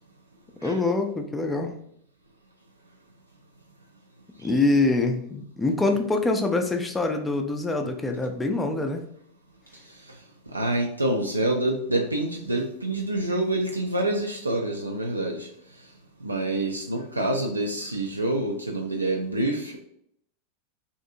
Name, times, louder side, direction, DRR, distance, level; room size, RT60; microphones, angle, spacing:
voice 1, 0.6-1.8 4.4-9.0, left 2 dB, 10° left, 4 dB, 0.3 m, -25 dB
voice 2, 10.5-15.5 16.2-19.8, right 1 dB, 85° right, 0 dB, 0.3 m, -27 dB
2.6 x 2.4 x 2.6 m, 0.70 s
figure-of-eight pair, 90°, 0 cm